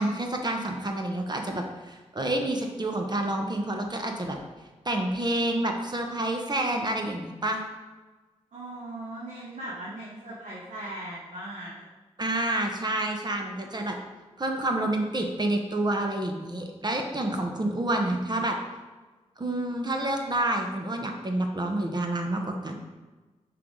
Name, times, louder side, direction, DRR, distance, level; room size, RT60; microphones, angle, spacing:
voice 1, 0.0-4.4 4.8-7.6 12.2-14.0 14.4-18.6 19.4-22.8, right 1 dB, 35° right, 3 dB, 1.0 m, -28 dB
voice 2, 8.5-11.9, right 1 dB, 70° right, -7 dB, 1.6 m, -39 dB
5.9 x 4.7 x 3.8 m, 1.3 s
supercardioid pair, 40°, 13 cm